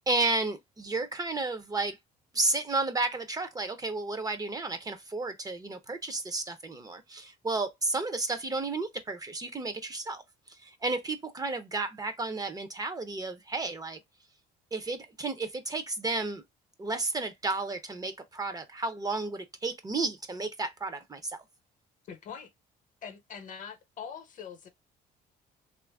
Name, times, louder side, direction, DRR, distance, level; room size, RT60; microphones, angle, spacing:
voice 1, 0.1-2.0 2.3-10.2 10.6-14.0 14.7-16.4 16.8-21.4, right 3 dB, 20° right, 0.5 m, -32 dB
voice 2, 22.0-22.5 23.0-24.7, left 7 dB, 50° left, 0.7 m, -43 dB
2.9 x 2.5 x 3.4 m
cardioid pair, 110°, 17 cm